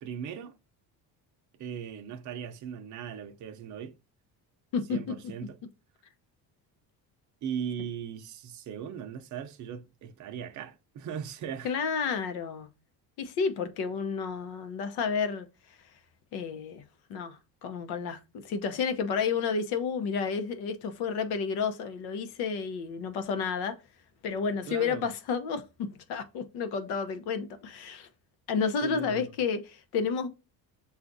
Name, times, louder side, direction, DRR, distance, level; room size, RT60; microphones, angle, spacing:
voice 1, 0.0-0.5 1.5-4.0 4.9-5.6 7.4-11.7 24.7-25.1 28.8-29.3, right 8 dB, 50° right, 0.6 m, -38 dB
voice 2, 11.6-12.7 13.2-15.5 16.3-16.8 17.1-18.2 18.4-23.8 24.2-28.1 28.5-30.3, left 5 dB, 85° left, 0.8 m, -31 dB
7.1 x 2.4 x 2.6 m
cardioid pair, 145°, 37 cm